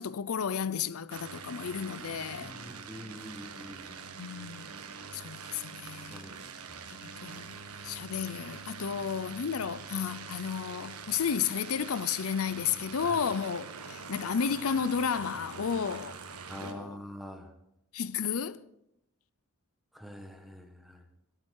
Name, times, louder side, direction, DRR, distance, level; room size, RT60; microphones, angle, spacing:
voice 1, 0.0-2.5 4.2-4.7 5.1-6.3 6.9-7.6 7.8-16.2 16.6-17.0 17.9-18.6, left 7 dB, 75° left, 0.6 m, -32 dB
sound 1, 1.1-16.7, right 5 dB, 90° right, 1.5 m, -44 dB
voice 2, 2.4-4.0 6.1-6.3 6.7-6.8 13.0-13.2 16.5-17.5 19.9-21.0, equal, ahead, 1.5 m, -45 dB
25.5 x 8.9 x 4.7 m
head